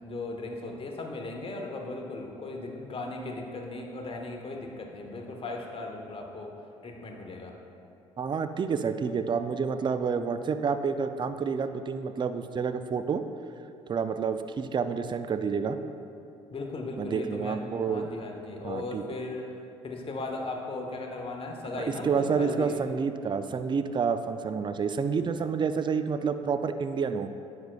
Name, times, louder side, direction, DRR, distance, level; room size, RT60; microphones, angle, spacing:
voice 1, 0.0-6.5 6.8-7.6 16.5-17.6 17.9-19.4 19.8-22.8, left 2 dB, 35° left, 2 dB, 1.2 m, -37 dB
voice 2, 8.2-13.2 13.9-15.8 17.0-18.1 18.6-19.0 21.7-27.3, right 5 dB, 30° right, 10 dB, 0.5 m, -29 dB
10.5 x 7.8 x 2.4 m, 2.7 s
hypercardioid pair, 55°, 16 cm